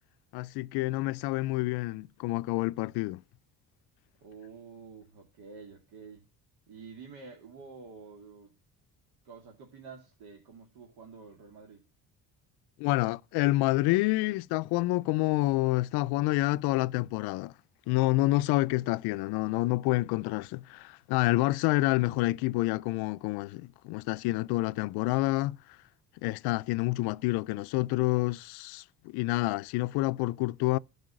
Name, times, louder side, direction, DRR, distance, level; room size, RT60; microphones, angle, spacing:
voice 1, 0.3-3.2 12.8-17.5 17.9-25.6 26.2-30.8, left 19 dB, 85° left, 0.5 m, -28 dB
voice 2, 4.2-6.3 6.7-8.5 9.2-11.8, right 5 dB, 80° right, 2.7 m, -49 dB
12.0 x 5.4 x 7.6 m
cardioid pair, 115°, 38 cm